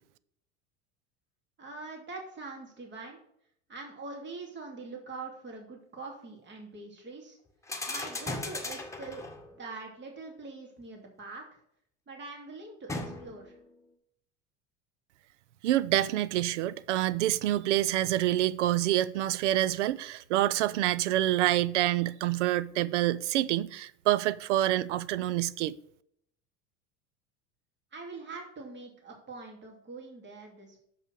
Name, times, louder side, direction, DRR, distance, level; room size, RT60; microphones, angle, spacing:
voice 1, 1.6-3.2 3.7-7.4 7.9-11.6 12.1-13.5 27.9-30.8, right 3 dB, 30° right, 2.8 m, -43 dB
sound 1, 7.6-9.6 12.9-13.6, left 2 dB, 10° left, 1.6 m, -37 dB
voice 2, 15.6-25.8, right 14 dB, 80° right, 0.6 m, -27 dB
6.9 x 5.6 x 6.3 m
hypercardioid pair, 90°, 35 cm